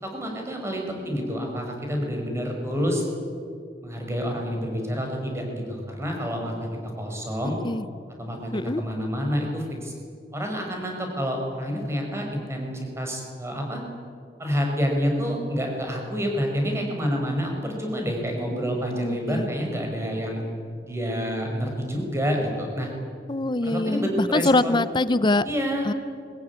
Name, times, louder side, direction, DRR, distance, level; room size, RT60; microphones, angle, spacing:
voice 1, 0.0-3.0 3.8-7.6 8.2-9.9 10.3-13.8 14.4-20.4 20.9-22.9 23.6-24.8 25.4-25.8, equal, 15° right, 1 dB, 5.4 m, -28 dB
voice 2, 1.0-1.6 7.4-7.8 8.5-8.8 18.5-19.5 23.3-25.4 25.8-25.9, left 2 dB, 25° left, 15 dB, 0.6 m, -25 dB
22.0 x 20.0 x 9.6 m, 2.2 s
head